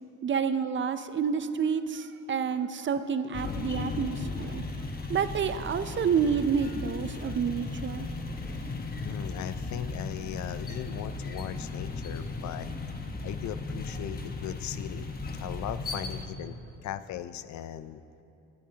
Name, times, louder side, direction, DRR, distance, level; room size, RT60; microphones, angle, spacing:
voice 1, 0.2-4.6 5.1-8.1, right 6 dB, 40° right, 12 dB, 0.5 m, -29 dB
sound 1, 3.3-16.2, left 3 dB, 30° left, 1.1 m, -36 dB
voice 2, 9.0-12.7 13.2-15.1 15.4-16.5 16.8-18.0, left 11 dB, 70° left, 13 dB, 0.5 m, -38 dB
21.0 x 8.5 x 2.8 m, 2.8 s
cardioid pair, 90°, 30 cm